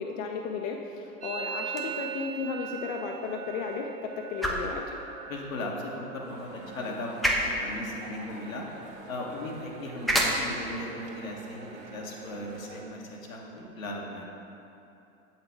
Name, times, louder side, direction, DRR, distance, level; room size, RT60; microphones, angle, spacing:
voice 1, 0.0-5.0, left 5 dB, 50° left, 2 dB, 0.6 m, -34 dB
Musical instrument, 1.2-8.9 9.1-9.7 9.9-10.5 10.8-12.8, right 7 dB, 20° right, 0.8 m, -42 dB
sound 1, 1.6-13.7, equal, ahead, 0.4 m, -35 dB
voice 2, 5.3-8.6 9.1-14.3, left 1 dB, 75° left, -1 dB, 1.1 m, -37 dB
sound 2, 6.2-12.8, right 3 dB, 40° right, 1.3 m, -47 dB
7.6 x 5.7 x 3.3 m, 2.8 s
figure-of-eight pair, 85°, 41 cm